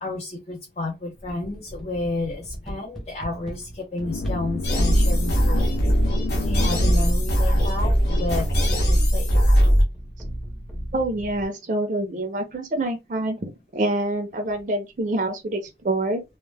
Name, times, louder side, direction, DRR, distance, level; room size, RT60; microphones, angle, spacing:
voice 1, 0.0-5.8 6.4-9.3, left 2 dB, 35° left, 0.5 m, -31 dB
sound 1, 1.2-5.8 6.7-11.5, equal, ahead, 0.7 m, -37 dB
sound 2, 4.0-7.5, left 2 dB, 90° left, 0.3 m, -30 dB
sound 3, 4.6-9.8, equal, 70° left, 0.8 m, -20 dB
voice 2, 10.9-16.2, right 1 dB, 45° right, 0.4 m, -26 dB
2.1 x 2.0 x 3.2 m
head